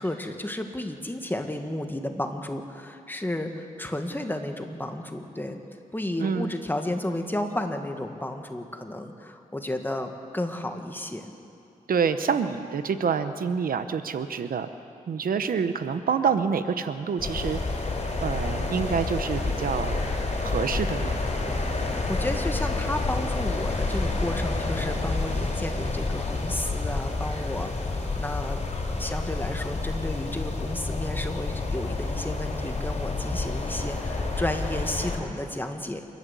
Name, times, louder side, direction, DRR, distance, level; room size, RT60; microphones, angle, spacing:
voice 1, 0.0-5.6 5.9-11.3 22.1-28.7 29.0-36.0, left 1 dB, 15° left, 5 dB, 1.8 m, -32 dB
voice 2, 6.2-6.5 11.9-14.7 15.1-17.6 18.2-20.1 20.4-21.1, right 6 dB, 85° right, 10 dB, 0.9 m, -27 dB
sound 1, 17.2-35.2, left 3 dB, 50° left, 4.3 m, -29 dB
28.0 x 11.5 x 8.3 m, 2.6 s
wide cardioid pair, 80°, 14 cm